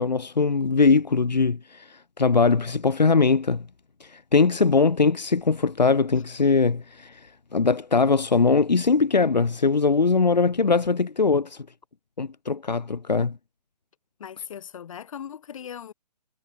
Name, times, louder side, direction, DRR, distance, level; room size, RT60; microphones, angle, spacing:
voice 1, 0.0-3.7 4.0-11.7 12.2-13.4, left 4 dB, 85° left, 0.8 m, -21 dB
voice 2, 14.2-15.9, left 8 dB, 50° left, 3.8 m, -38 dB
figure-of-eight pair, 135°, 21 cm